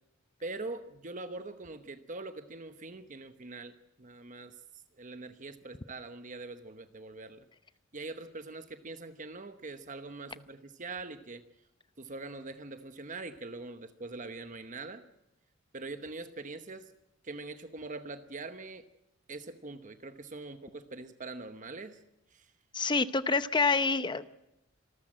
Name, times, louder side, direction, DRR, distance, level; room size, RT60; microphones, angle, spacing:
voice 1, 0.4-4.6 4.9-7.5 7.9-11.4 12.0-15.0 15.7-16.9 17.2-18.9 19.3-22.0 22.3-22.5, right 3 dB, 40° right, 9 dB, 1.0 m, -43 dB
voice 2, 22.7-24.3, left 4 dB, 20° left, 12 dB, 0.8 m, -27 dB
26.5 x 13.5 x 7.6 m, 0.88 s
head